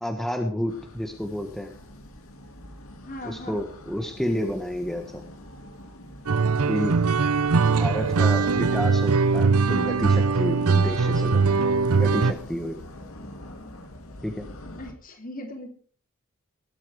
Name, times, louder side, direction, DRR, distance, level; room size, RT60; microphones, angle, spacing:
voice 1, 0.0-1.7 3.2-5.2 6.7-7.0 7.7-12.8 14.2-14.5, equal, ahead, 4 dB, 1.3 m, -30 dB
sound 1, 0.7-14.9, left 1 dB, 75° left, 2.2 m, -44 dB
voice 2, 3.0-3.6 7.6-8.3 14.8-15.7, left 1 dB, 40° left, 4 dB, 3.1 m, -40 dB
sound 2, 6.3-12.3, right 4 dB, 85° right, 0.7 m, -21 dB
18.5 x 8.7 x 4.9 m, 0.44 s
head